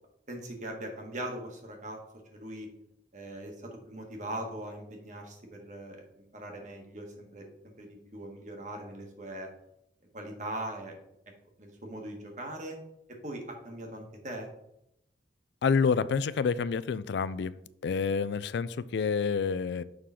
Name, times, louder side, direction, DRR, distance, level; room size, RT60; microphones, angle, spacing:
voice 1, 0.3-2.0 2.3-2.7 3.1-9.5 10.1-10.9 11.6-12.8 13.1-14.5, right 1 dB, 40° right, 2 dB, 1.4 m, -40 dB
voice 2, 15.6-17.5 17.8-19.8, left 5 dB, 70° left, 16 dB, 0.3 m, -28 dB
6.5 x 3.8 x 5.7 m, 0.81 s
head